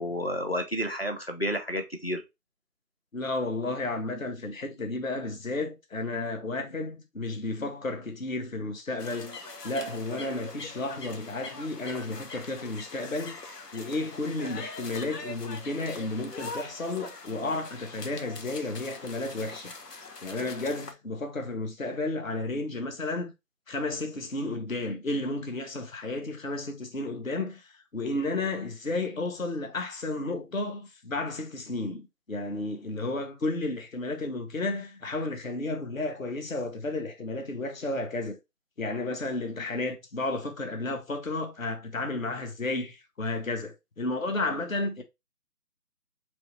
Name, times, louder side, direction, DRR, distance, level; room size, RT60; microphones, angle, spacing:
voice 1, 0.0-2.2, equal, 40° left, 0.7 m, -30 dB
voice 2, 3.1-13.4 13.7-19.7 20.2-23.3 23.7-38.4 38.8-45.0, left 2 dB, 55° left, 1.0 m, -32 dB
sound 1, 9.0-20.9, left 3 dB, 80° left, 1.1 m, -42 dB
4.5 x 3.1 x 3.1 m
figure-of-eight pair, 175°, 47 cm